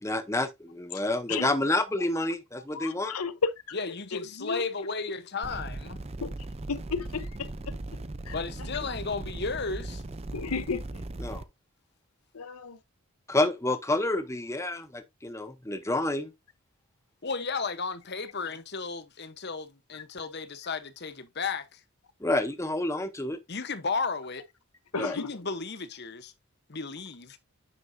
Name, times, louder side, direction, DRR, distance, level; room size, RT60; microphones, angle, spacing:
voice 1, 0.0-3.2 11.2-11.4 13.3-16.3 22.2-23.4 24.9-25.2, left 2 dB, 15° left, 0.8 m, -29 dB
voice 2, 2.7-3.5 4.4-4.6 6.2-6.3 6.7-7.7 8.3-8.4 10.3-10.8 12.3-12.8 24.9-25.3, left 5 dB, 80° left, 0.8 m, -32 dB
voice 3, 3.7-6.0 8.3-10.0 17.2-21.8 23.5-24.4 25.1-26.3 26.7-27.4, left 4 dB, 45° left, 1.0 m, -34 dB
sound 1, 5.4-11.4, right 2 dB, 25° right, 0.5 m, -38 dB
9.7 x 6.0 x 2.7 m
head